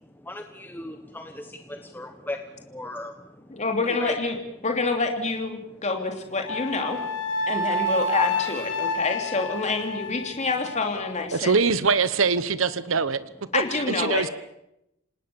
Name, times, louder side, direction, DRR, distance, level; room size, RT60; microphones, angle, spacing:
voice 1, 0.0-4.2 5.6-5.9 7.4-7.9 8.9-9.0 10.2-10.4, left 1 dB, 10° left, 6 dB, 1.3 m, -39 dB
voice 2, 3.5-4.4 4.6-7.0 7.5-11.5 13.5-14.3, left 3 dB, 35° left, 4 dB, 3.0 m, -27 dB
Wind instrument woodwind instrument, 6.4-10.8, left 1 dB, 65° left, 3.3 m, -29 dB
voice 3, 11.3-13.2 13.9-14.3, right 5 dB, 65° right, 15 dB, 1.0 m, -23 dB
28.0 x 19.5 x 7.1 m, 0.84 s
head